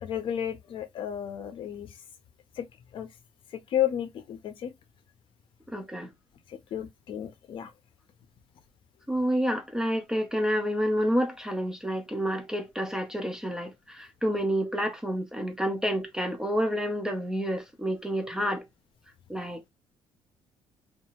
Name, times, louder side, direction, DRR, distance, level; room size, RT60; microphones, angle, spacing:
voice 1, 0.0-1.9 2.6-2.7 2.9-3.1 3.7-4.7 6.5-7.7, left 10 dB, 50° left, 0.6 m, -32 dB
voice 2, 5.7-6.1 9.1-18.7 19.3-19.7, equal, 5° right, 0.4 m, -29 dB
2.8 x 2.5 x 2.8 m
cardioid pair, 165°, 11 cm